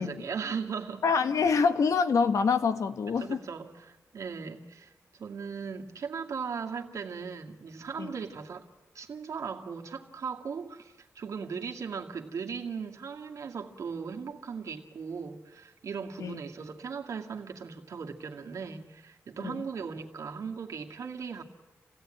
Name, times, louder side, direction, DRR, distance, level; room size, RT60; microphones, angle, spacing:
voice 1, 0.0-1.0 3.2-8.7 8.9-21.4, right 6 dB, 75° right, 2.2 m, -38 dB
voice 2, 1.0-3.4 8.0-8.1 16.2-16.4 19.4-19.6, left 5 dB, 75° left, 1.3 m, -26 dB
29.0 x 17.0 x 9.1 m
wide cardioid pair, 110°, 6 cm